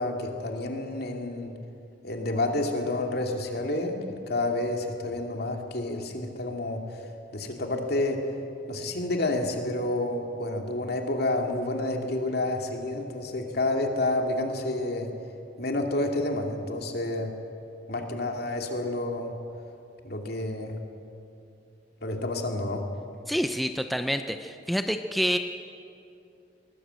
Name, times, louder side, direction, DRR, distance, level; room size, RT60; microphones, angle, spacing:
voice 1, 0.0-1.5 2.0-8.3 8.7-15.1 15.6-17.3 17.9-19.3 20.0-20.8 22.0-22.8, left 2 dB, 60° left, 3 dB, 2.6 m, -29 dB
voice 2, 23.3-25.4, equal, ahead, 7 dB, 0.6 m, -27 dB
22.0 x 19.0 x 8.2 m, 2.6 s
head